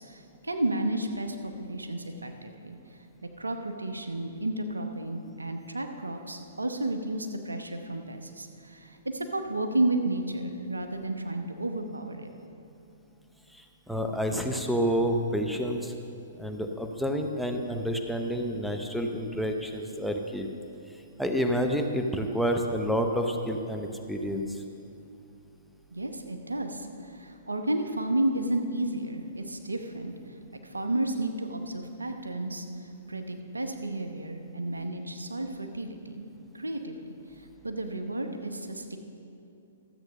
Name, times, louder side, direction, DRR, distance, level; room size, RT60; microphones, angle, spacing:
voice 1, 0.0-2.8 3.4-12.3 25.9-30.1 30.6-32.6 33.1-36.3 36.5-37.0 37.4-39.0, right 1 dB, 90° right, 6 dB, 0.9 m, -32 dB
voice 2, 13.5-15.9 16.4-20.5 21.2-24.6, equal, ahead, 3 dB, 0.8 m, -29 dB
13.0 x 8.0 x 5.4 m, 2.7 s
figure-of-eight pair, 120°, 0 cm